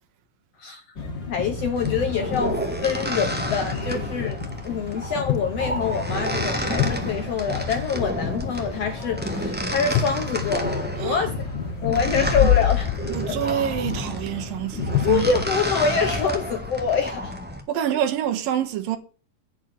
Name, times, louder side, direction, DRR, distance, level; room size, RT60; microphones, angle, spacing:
sound 1, 1.0-15.7, left 4 dB, 35° left, 2.6 m, -33 dB
voice 1, 1.3-4.4 4.6-10.7 11.0-11.5 11.8-13.4 15.0-17.3, left 6 dB, 70° left, 1.6 m, -25 dB
sound 2, 1.6-1.9 2.5-2.6 3.5-3.7 4.4-5.0 5.3-5.7 6.0-6.3 6.8-7.5 8.7-9.0 9.3-9.5 9.9-11.1 12.7-13.7 14.9-15.6 16.1-16.5 17.0-17.2, left 11 dB, 85° left, 2.4 m, -31 dB
sound 3, 1.8-17.6, left 3 dB, 10° right, 0.4 m, -29 dB
voice 2, 11.9-12.5 13.1-15.3 17.7-19.0, right 10 dB, 75° right, 2.9 m, -27 dB
10.0 x 5.0 x 7.2 m
omnidirectional pair, 4.0 m